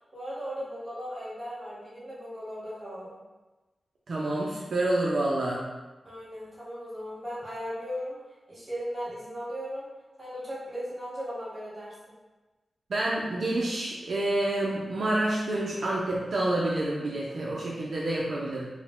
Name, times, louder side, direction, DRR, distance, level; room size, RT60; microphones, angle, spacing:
voice 1, 0.1-3.1 6.0-8.2 8.5-9.9 10.2-11.9, equal, 20° right, -9 dB, 1.3 m, -37 dB
voice 2, 4.1-5.7 12.9-18.7, right 1 dB, 60° right, -4 dB, 0.5 m, -28 dB
4.8 x 2.1 x 3.5 m, 1.2 s
wide cardioid pair, 170°, 0 cm